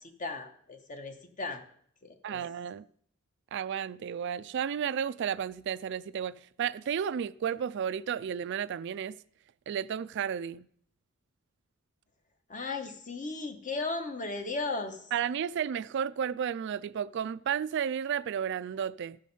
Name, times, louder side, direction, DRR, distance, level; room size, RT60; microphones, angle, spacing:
voice 1, 0.0-1.6 2.0-2.4 12.5-15.0, left 3 dB, 40° left, 1.1 m, -36 dB
voice 2, 2.2-2.8 3.5-9.2 9.7-10.7 15.1-19.2, right 8 dB, 60° right, 0.3 m, -32 dB
13.5 x 5.0 x 5.4 m
head